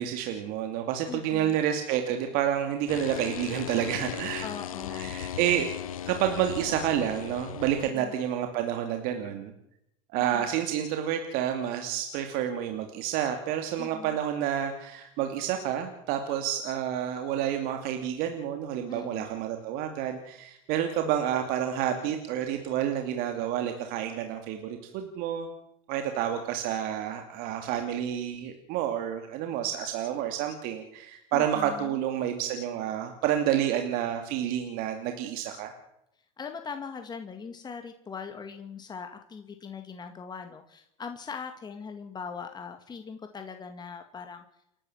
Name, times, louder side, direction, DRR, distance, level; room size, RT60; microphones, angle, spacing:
voice 1, 0.0-4.5 4.9-5.7 6.1-9.5 10.1-25.5 25.9-35.7, right 10 dB, 60° right, 5 dB, 2.7 m, -29 dB
voice 2, 1.1-1.6 4.4-5.1 7.9-8.1 10.2-10.5 13.8-14.2 18.9-19.3 31.3-32.0 36.4-44.4, left 6 dB, 25° left, 6 dB, 2.2 m, -41 dB
sound 1, 2.9-7.9, left 10 dB, 90° left, 1.0 m, -37 dB
29.0 x 12.0 x 7.4 m, 0.79 s
hypercardioid pair, 90°, 17 cm